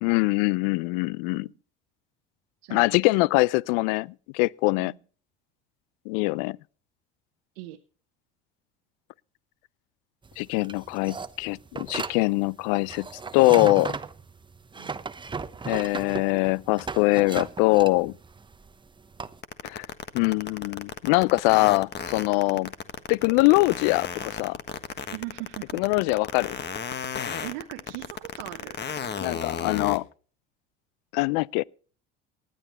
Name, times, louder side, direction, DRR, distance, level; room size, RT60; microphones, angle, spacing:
voice 1, 0.0-1.5 2.7-4.9 6.1-6.6 10.4-13.1 13.3-14.0 15.7-18.1 19.6-19.9 20.1-22.7 23.1-24.6 25.7-26.6 29.2-30.0 31.1-31.6, left 22 dB, 70° left, 0.5 m, -23 dB
voice 2, 1.2-1.6 2.6-3.2 4.8-5.0 7.5-7.8 14.8-15.0 22.5-22.7 25.1-25.8 27.4-28.8, right 18 dB, 75° right, 1.0 m, -40 dB
sound 1, 10.2-19.4, right 4 dB, 15° right, 0.9 m, -36 dB
sound 2, 19.4-30.0, left 7 dB, 35° left, 1.5 m, -33 dB
19.0 x 11.0 x 3.1 m
hypercardioid pair, 80°, 30 cm